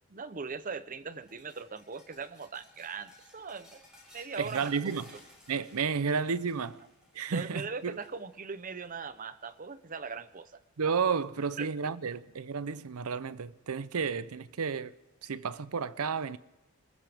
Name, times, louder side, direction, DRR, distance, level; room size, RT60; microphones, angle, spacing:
voice 1, 0.0-3.8 4.1-4.7 7.3-10.6 11.6-11.9, right 5 dB, 35° right, 0.7 m, -40 dB
sound 1, 1.2-9.7 10.0-10.4 10.8-11.6 13.0-13.1 14.3-14.4, left 1 dB, 5° right, 5.4 m, -58 dB
voice 2, 4.4-5.1 5.5-6.8 7.1-8.0 10.8-14.9 15.2-16.4, right 5 dB, 75° right, 0.6 m, -32 dB
28.0 x 15.0 x 3.5 m
head